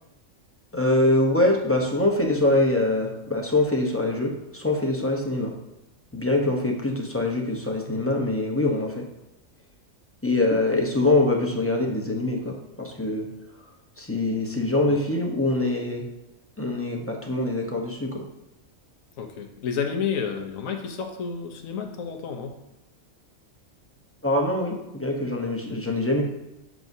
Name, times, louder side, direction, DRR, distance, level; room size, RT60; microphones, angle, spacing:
voice 1, 0.7-5.5 6.1-9.0 10.2-13.3 13.6-13.7 14.0-16.0 16.6-18.2 24.2-26.2, left 2 dB, 15° left, 0 dB, 0.6 m, -24 dB
voice 2, 19.2-22.5, left 6 dB, 80° left, 4 dB, 1.2 m, -30 dB
7.6 x 6.0 x 2.7 m, 0.90 s
omnidirectional pair, 1.4 m